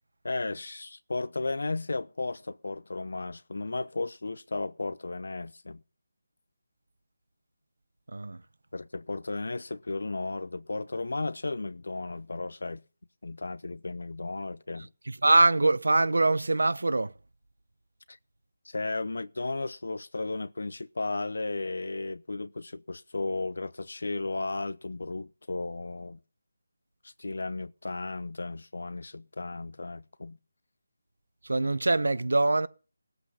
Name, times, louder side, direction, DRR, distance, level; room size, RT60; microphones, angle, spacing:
voice 1, 0.2-5.8 8.7-12.8 13.2-14.9 18.1-18.2 18.6-26.2 27.0-30.4, left 3 dB, 55° left, 0.7 m, -34 dB
voice 2, 15.1-17.1 31.4-32.7, right 2 dB, 75° right, 1.0 m, -23 dB
17.5 x 8.0 x 5.5 m
figure-of-eight pair, 180°, 0 cm